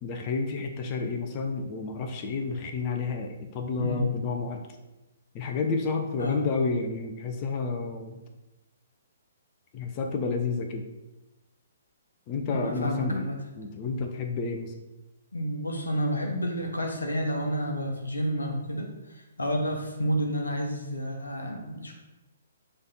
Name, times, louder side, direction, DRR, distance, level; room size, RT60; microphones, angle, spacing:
voice 1, 0.0-4.7 5.3-8.2 9.7-10.8 12.3-13.3 13.6-14.7, left 4 dB, 30° left, 4 dB, 0.7 m, -30 dB
voice 2, 3.8-4.2 6.2-6.4 12.5-13.4 15.3-21.9, equal, 75° left, 1 dB, 1.1 m, -30 dB
6.9 x 3.3 x 4.2 m, 1.1 s
figure-of-eight pair, 125°, 0 cm